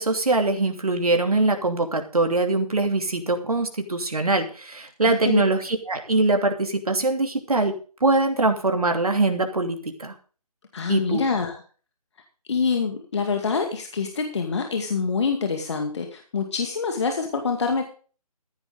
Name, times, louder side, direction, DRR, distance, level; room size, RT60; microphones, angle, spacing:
voice 1, 0.0-7.7 8.0-10.1 10.9-11.2, right 2 dB, 70° right, 5 dB, 2.8 m, -23 dB
voice 2, 5.0-5.4 10.7-11.6 12.5-17.8, left 5 dB, 45° left, 4 dB, 2.3 m, -26 dB
14.5 x 10.5 x 3.8 m, 0.38 s
figure-of-eight pair, 150°, 20 cm